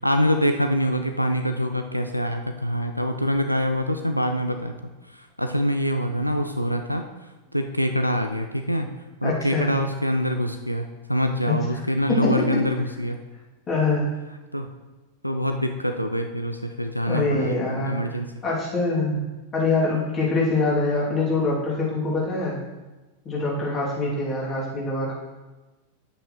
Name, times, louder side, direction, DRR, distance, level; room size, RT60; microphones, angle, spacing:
voice 1, 0.0-4.7 5.1-7.1 7.5-8.9 9.2-13.2 14.5-14.7 15.2-18.3, equal, 90° left, 5 dB, 0.5 m, -25 dB
voice 2, 9.2-9.7 11.5-11.6 12.1-12.6 13.7-14.1 17.1-19.2 19.5-22.6 23.2-25.2, left 3 dB, 25° left, -5 dB, 2.8 m, -24 dB
9.7 x 8.6 x 3.1 m, 1.2 s
figure-of-eight pair, 90°, 0 cm